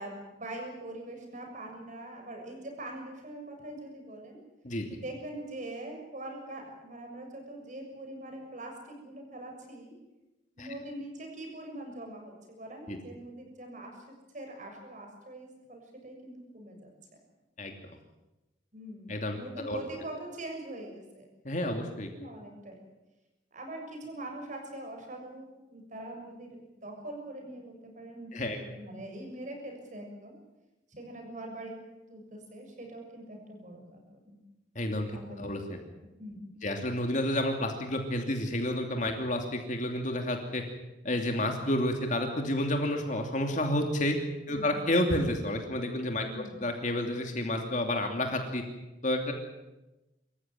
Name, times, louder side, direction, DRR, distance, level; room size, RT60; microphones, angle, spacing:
voice 1, 0.0-4.4 4.9-9.9 10.6-16.9 18.7-21.3 22.1-22.8 23.5-30.4 30.9-31.8 32.1-34.4 35.1-35.5 35.8-35.9 36.2-36.7 44.5-44.8 46.2-46.6, right 1 dB, 45° right, 2 dB, 6.8 m, -43 dB
voice 2, 21.4-22.1 28.3-28.6 34.7-35.8 36.6-40.6 41.0-44.2 44.5-48.6 49.0-49.3, left 1 dB, 45° left, 3 dB, 2.8 m, -30 dB
25.5 x 15.0 x 9.4 m, 1.0 s
head